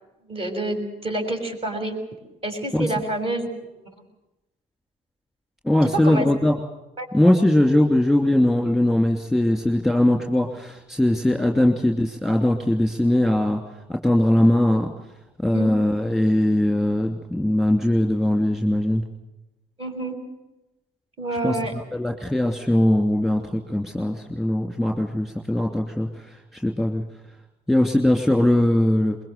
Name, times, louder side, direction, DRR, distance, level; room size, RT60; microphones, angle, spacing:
voice 1, 0.3-2.0 2.4-3.5 6.0-6.3 7.0-7.1 15.5-15.8 19.8-20.1 21.2-21.7, right 1 dB, 35° right, 4 dB, 6.4 m, -28 dB
voice 2, 5.6-6.6 7.1-13.6 13.9-14.9 15.4-19.0 21.4-27.0 27.7-29.2, left 1 dB, ahead, 2 dB, 2.8 m, -20 dB
23.0 x 22.0 x 6.8 m, 0.98 s
cardioid pair, 110°, 17 cm